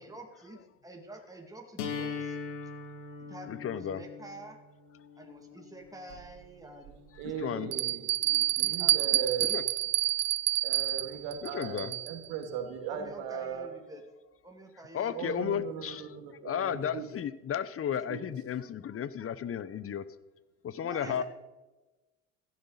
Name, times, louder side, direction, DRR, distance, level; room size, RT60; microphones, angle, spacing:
voice 1, 0.0-2.4 3.2-4.6 5.2-7.0 7.4-9.1 9.5-9.6 12.9-14.0 14.4-15.9 20.8-21.2, right 1 dB, 10° right, 2 dB, 2.4 m, -48 dB
sound 1, 1.8-7.8, left 5 dB, 80° left, 2.1 m, -42 dB
voice 2, 3.5-4.0 7.2-7.7 9.4-9.6 11.4-11.9 14.9-16.2 16.4-20.1 20.6-21.2, left 8 dB, 35° left, 17 dB, 0.8 m, -34 dB
Bell, 6.1-6.2 6.9-7.0 7.7-12.3, right 15 dB, 45° right, 0.5 m, -28 dB
voice 3, 7.2-9.5 10.6-13.7 15.1-17.1 18.1-18.2 21.0-21.2, right 7 dB, 70° right, 5 dB, 2.4 m, -38 dB
16.0 x 11.5 x 4.1 m, 1.1 s
hypercardioid pair, 70°, 38 cm